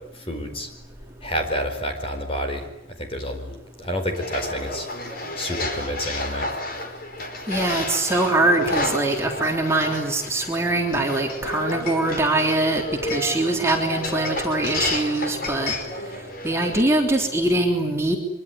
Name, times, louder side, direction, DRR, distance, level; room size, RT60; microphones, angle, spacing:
voice 1, 0.1-0.7 1.2-4.9 5.4-6.5, equal, 30° left, 6 dB, 4.6 m, -29 dB
sound 1, 4.1-16.8, left 2 dB, 45° left, 4.7 m, -31 dB
voice 2, 7.5-15.7 16.4-18.2, right 2 dB, 15° right, 1 dB, 3.4 m, -22 dB
24.5 x 23.5 x 9.9 m, 0.85 s
head